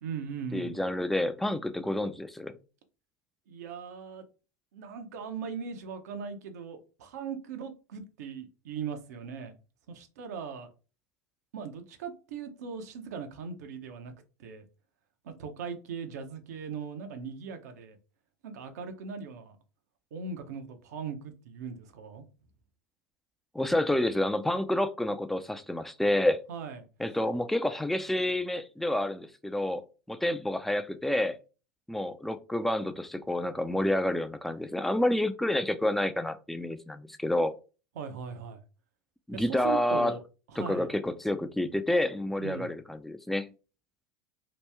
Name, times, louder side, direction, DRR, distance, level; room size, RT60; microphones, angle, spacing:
voice 1, 0.0-0.8 3.5-4.3 4.7-9.6 9.9-10.7 11.5-14.1 14.4-14.6 15.2-18.0 18.4-19.6 20.1-22.2 26.5-26.8 38.0-38.6 39.3-40.2 40.5-40.9 42.4-42.7, right 6 dB, 75° right, 0.7 m, -39 dB
voice 2, 0.5-2.5 23.5-26.4 27.0-29.8 30.1-31.4 31.9-37.5 39.3-40.1 40.6-43.5, left 1 dB, ahead, 0.4 m, -29 dB
3.0 x 2.6 x 3.4 m
hypercardioid pair, 85°, 9 cm